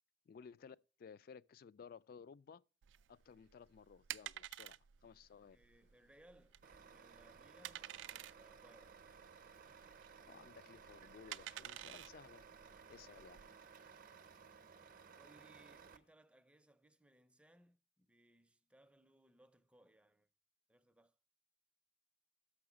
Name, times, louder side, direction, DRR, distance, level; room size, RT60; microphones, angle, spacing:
voice 1, 0.3-2.6 3.1-4.8 5.0-5.6 10.3-12.4 12.9-13.4, left 6 dB, 55° left, 0.3 m, -57 dB
sound 1, 2.8-13.5, right 13 dB, 85° right, 0.3 m, -51 dB
sound 2, 5.0-16.1, left 2 dB, 75° left, 1.8 m, -80 dB
voice 2, 5.5-9.0 12.9-13.3 15.2-20.3 20.7-21.2, right 1 dB, 5° right, 0.5 m, -67 dB
Truck, 6.6-16.0, right 6 dB, 50° right, 0.6 m, -59 dB
6.3 x 5.9 x 6.0 m
head